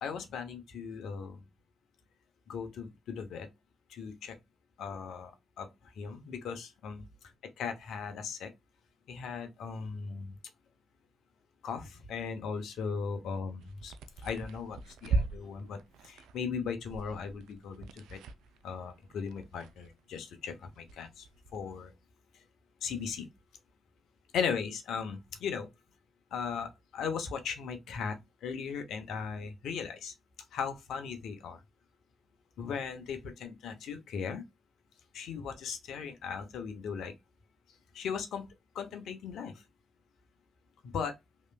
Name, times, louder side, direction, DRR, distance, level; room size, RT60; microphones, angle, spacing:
voice 1, 0.0-1.4 2.5-3.5 3.9-4.4 4.8-5.3 5.6-5.7 6.0-7.0 7.6-8.5 9.1-10.4 11.6-13.9 14.2-18.2 18.6-21.3 21.5-21.9 22.8-23.3 24.3-25.7 26.3-30.1 30.5-31.6 32.6-34.4 35.1-37.1 37.9-38.5 38.7-39.6 40.8-41.2, left 6 dB, 80° left, 0.7 m, -37 dB
sound 1, 13.3-20.3 20.6-21.6, right 3 dB, 85° right, 0.3 m, -39 dB
3.1 x 2.9 x 2.2 m
hypercardioid pair, 40°, 0 cm